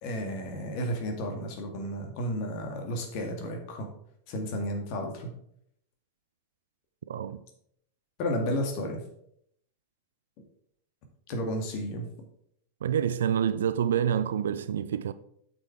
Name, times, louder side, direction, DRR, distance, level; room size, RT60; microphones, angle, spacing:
voice 1, 0.0-3.9 4.3-5.3 8.2-9.0 11.3-12.1, equal, 45° left, 2.1 m, -32 dB
voice 2, 7.1-7.4 12.8-15.1, right 9 dB, 65° right, 0.4 m, -27 dB
8.3 x 6.2 x 4.8 m
figure-of-eight pair, 90°, 0 cm